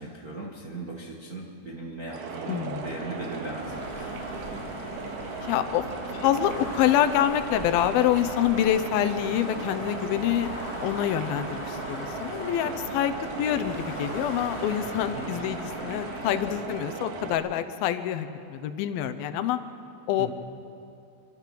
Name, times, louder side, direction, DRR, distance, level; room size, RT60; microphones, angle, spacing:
voice 1, 0.0-4.0 15.1-15.3 20.2-20.3, right 2 dB, 55° right, -3 dB, 1.0 m, -38 dB
sound 1, 2.1-17.3, right 5 dB, 85° right, 3.4 m, -37 dB
voice 2, 2.5-3.0 5.4-5.9 6.1-10.5 10.8-19.6 20.1-20.3, left 11 dB, 80° left, 10 dB, 2.6 m, -26 dB
sound 2, 3.3-16.6, left 2 dB, 25° left, 1.5 m, -39 dB
27.5 x 12.5 x 7.6 m, 2.6 s
omnidirectional pair, 4.4 m